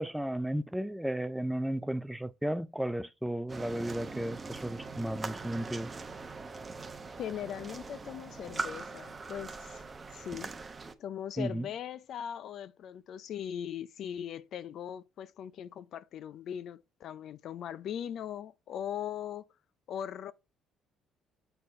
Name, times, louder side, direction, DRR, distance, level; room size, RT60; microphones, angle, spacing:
voice 1, 0.0-5.9 11.4-11.7, right 1 dB, ahead, 0.4 m, -34 dB
sound 1, 3.5-10.9, right 3 dB, 20° right, 0.8 m, -41 dB
voice 2, 7.2-9.8 10.1-10.5 11.0-19.5 19.9-20.3, left 9 dB, 55° left, 0.5 m, -40 dB
6.8 x 4.4 x 4.2 m
cardioid pair, 135°, 0 cm